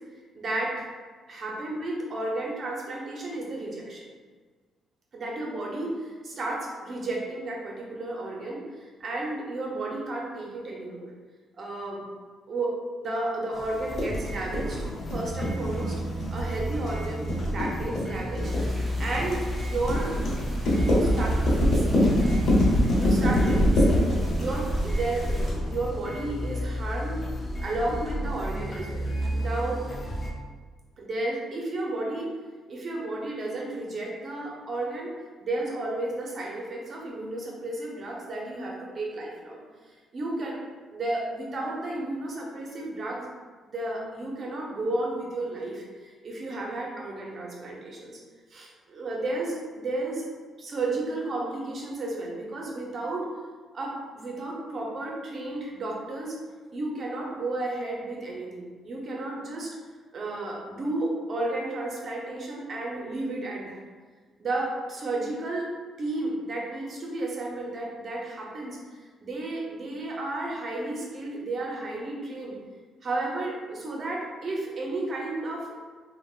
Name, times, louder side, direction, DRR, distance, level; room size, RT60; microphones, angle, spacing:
voice 1, 0.3-0.9 1.3-4.1 5.1-11.0 11.6-12.0 12.5-16.0 16.3-20.1 20.7-22.3 23.0-24.0 24.4-27.2 27.6-29.8 31.0-32.3 32.7-35.1 35.4-39.6 40.1-40.6 40.9-43.3 43.6-48.2 48.5-50.3 50.6-53.3 53.7-56.4 56.7-59.7 60.1-63.8 64.4-65.7 66.0-72.6 73.0-75.7, right 2 dB, 50° right, -2 dB, 0.7 m, -33 dB
sound 1, 13.5-30.3, right 1 dB, 35° left, 0.4 m, -32 dB
sound 2, 14.0-25.5, left 1 dB, 60° left, 0.9 m, -24 dB
sound 3, 18.4-25.5, equal, 10° right, 0.7 m, -32 dB
3.3 x 2.2 x 2.4 m, 1.4 s
cardioid pair, 90°, 0 cm